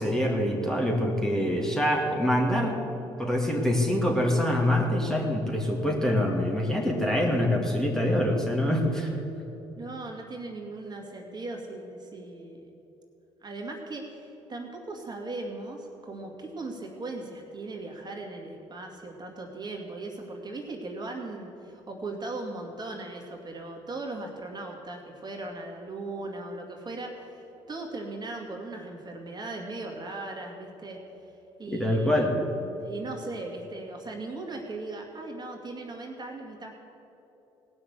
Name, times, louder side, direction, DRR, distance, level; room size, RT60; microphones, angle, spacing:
voice 1, 0.0-2.8 3.2-9.1 31.7-32.3, left 1 dB, 5° left, 0 dB, 2.2 m, -25 dB
voice 2, 9.8-12.8 13.4-31.0 31.6-36.7, right 2 dB, 35° right, 1 dB, 2.3 m, -38 dB
17.5 x 6.3 x 8.2 m, 3.0 s
supercardioid pair, 65°, 13 cm